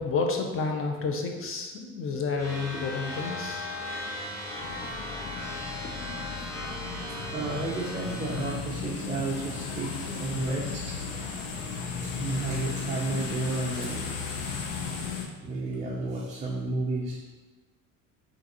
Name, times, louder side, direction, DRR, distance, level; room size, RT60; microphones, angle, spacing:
voice 1, 0.0-3.7, left 4 dB, 30° left, 3 dB, 0.6 m, -30 dB
sound 1, 2.4-8.5, left 1 dB, 5° left, 1.0 m, -37 dB
sound 2, 4.6-15.2, left 5 dB, 70° left, 0.7 m, -35 dB
voice 2, 7.1-11.0 12.0-14.1 15.4-17.2, right 3 dB, 15° right, -4 dB, 0.4 m, -32 dB
3.7 x 2.5 x 2.9 m, 1.2 s
hypercardioid pair, 65°, 43 cm